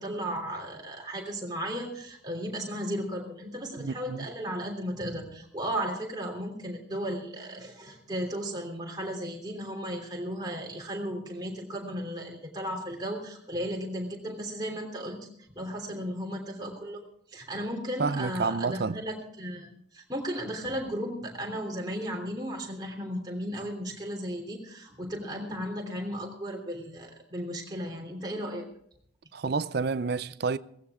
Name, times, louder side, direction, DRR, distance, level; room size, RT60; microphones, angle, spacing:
voice 1, 0.0-15.2 15.5-17.0 17.3-28.6, equal, 20° right, 3.2 m, -35 dB
voice 2, 3.8-4.3 18.0-19.0 29.3-30.6, right 4 dB, 55° right, 0.5 m, -29 dB
17.5 x 15.5 x 3.7 m
head